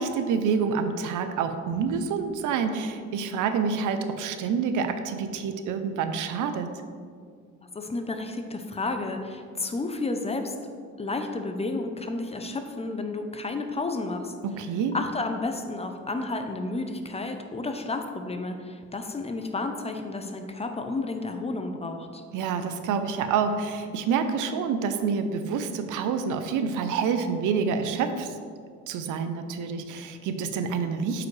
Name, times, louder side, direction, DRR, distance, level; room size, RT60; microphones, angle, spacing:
voice 1, 0.0-6.7 14.4-14.9 22.3-28.3 28.9-31.3, right 6 dB, 85° right, 8 dB, 0.6 m, -27 dB
voice 2, 7.7-10.5 11.0-14.3 14.9-22.2, left 3 dB, 20° left, 6 dB, 0.6 m, -31 dB
8.1 x 4.9 x 3.2 m, 2.1 s
cardioid pair, 90°, 30 cm